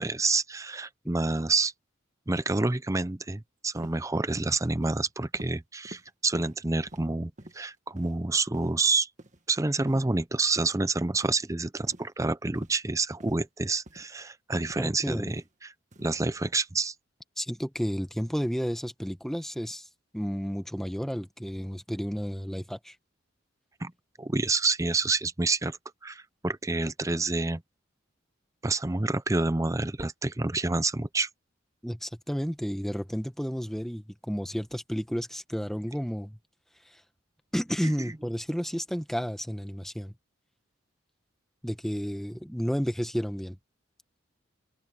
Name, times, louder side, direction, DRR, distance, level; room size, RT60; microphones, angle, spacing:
voice 1, 0.0-1.7 2.3-9.1 9.5-15.7 16.0-16.9 23.8-23.9 24.2-25.8 26.0-27.6 28.6-31.3 38.0-38.1, right 3 dB, 15° right, 0.6 m, -28 dB
sound 1, 3.8-3.9 4.3-4.5 4.8-5.0 5.3-5.5 5.8-6.0 6.4-6.6 6.9-7.0 7.4-7.6 8.0-8.1 8.5-8.7 9.2-9.4 9.9-10.0 10.6-10.7 11.2-11.4 11.9-12.1 12.5-12.7 13.2-13.4 13.9-14.0 14.6-14.8 15.3-15.5 15.9-16.1, right 1 dB, 35° right, 1.7 m, -46 dB
voice 2, 14.8-15.3 17.4-19.9 20.1-22.9 31.8-36.4 36.9-37.0 37.5-40.1 41.6-43.6, equal, ahead, 1.2 m, -32 dB
open air
head